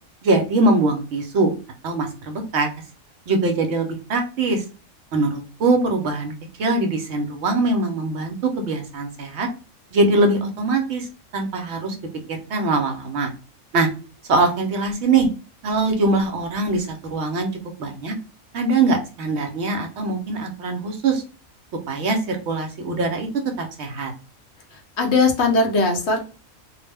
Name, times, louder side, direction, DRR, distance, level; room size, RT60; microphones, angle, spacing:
voice 1, 0.2-1.5 1.8-2.7 3.3-4.6 5.1-6.3 6.6-9.5 9.9-11.1 11.3-12.0 12.5-13.3 13.7-13.9 14.3-15.3 15.6-17.5 17.8-18.2 18.5-21.2 21.9-23.3 23.6-24.1, right 3 dB, 65° right, 3 dB, 0.8 m, -22 dB
voice 2, 24.7-26.2, left 3 dB, 65° left, 3 dB, 0.8 m, -19 dB
2.4 x 2.0 x 3.3 m, 0.36 s
omnidirectional pair, 1.4 m